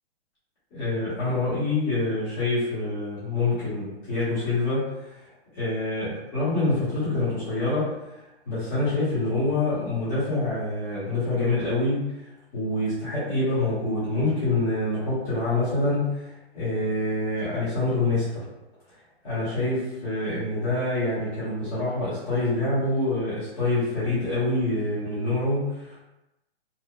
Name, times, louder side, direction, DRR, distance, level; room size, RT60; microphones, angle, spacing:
voice 1, 0.7-8.1 8.4-12.3 12.5-18.4 19.2-26.0, left 2 dB, 10° left, -14 dB, 0.8 m, -26 dB
2.8 x 2.1 x 2.2 m, 0.97 s
hypercardioid pair, 175°, 32 cm